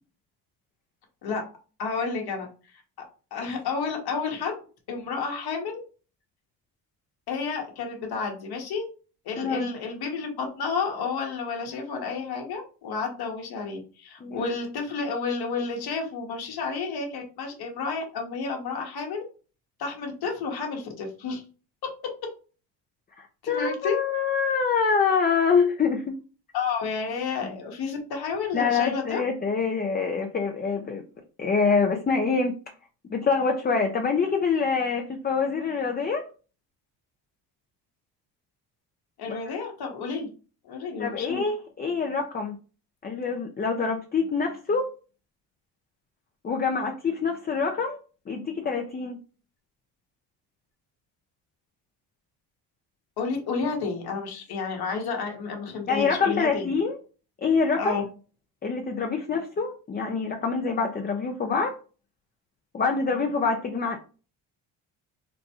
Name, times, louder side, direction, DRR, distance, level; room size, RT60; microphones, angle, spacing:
voice 1, 1.8-2.5 3.3-4.6 4.9-5.8 7.3-8.9 9.2-19.2 19.8-21.4 23.4-24.0 26.5-29.2 39.2-40.3 40.6-41.4 53.2-56.8 57.8-58.0, left 5 dB, 60° left, 2 dB, 1.2 m, -31 dB
voice 2, 9.4-9.7 14.2-14.5 23.2-26.1 27.4-27.6 28.5-31.0 31.4-32.5 33.1-36.2 39.3-39.4 41.0-42.6 43.0-44.9 46.4-48.0 48.3-49.2 55.9-57.0 57.4-57.9 58.6-61.8 62.7-64.0, left 5 dB, 20° left, 3 dB, 0.5 m, -25 dB
3.9 x 2.2 x 2.9 m, 0.36 s
supercardioid pair, 65°, 43 cm